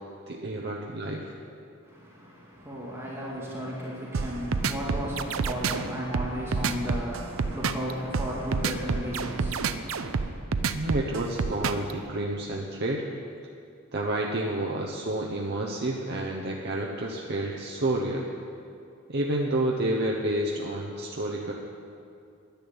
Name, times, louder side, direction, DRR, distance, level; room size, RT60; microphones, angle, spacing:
voice 1, 0.3-1.3 10.7-13.0 13.9-18.3 19.1-21.5, right 1 dB, 55° right, -1 dB, 1.0 m, -29 dB
voice 2, 1.8-10.4, equal, 10° right, -6 dB, 2.1 m, -35 dB
sound 1, 4.1-11.9, right 5 dB, 75° right, 0.6 m, -28 dB
10.5 x 10.5 x 8.0 m, 2.5 s
head